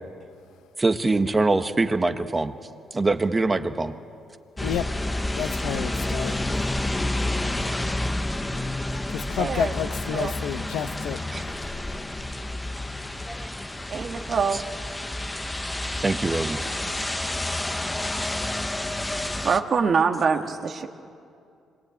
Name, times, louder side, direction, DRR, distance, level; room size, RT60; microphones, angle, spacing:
voice 1, 0.8-2.5 2.9-3.9 11.3-11.4 14.5-14.6 16.0-16.6 16.8-16.9, right 3 dB, 20° right, 8 dB, 1.4 m, -23 dB
sound 1, 4.6-19.6, left 1 dB, 15° left, 1.0 m, -29 dB
voice 2, 5.3-6.8 9.1-11.6, left 10 dB, 85° left, 11 dB, 0.9 m, -31 dB
voice 3, 9.4-10.4 13.9-14.6 19.4-20.9, right 5 dB, 50° right, 5 dB, 1.9 m, -25 dB
26.5 x 21.5 x 9.2 m, 2.4 s
cardioid pair, 90°, 0 cm